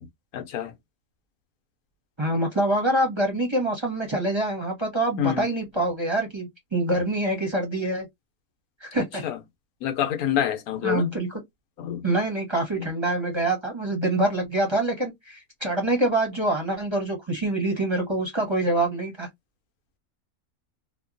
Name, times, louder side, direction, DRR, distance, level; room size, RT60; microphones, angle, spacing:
voice 1, 0.3-0.7 5.2-5.5 9.2-9.4 9.8-11.1 11.8-12.0 12.8-12.9, left 10 dB, 85° left, 1.2 m, -27 dB
voice 2, 2.2-8.1 8.8-9.2 10.8-11.4 12.0-19.3, right 1 dB, 25° right, 0.8 m, -25 dB
2.8 x 2.2 x 2.5 m
omnidirectional pair, 1.5 m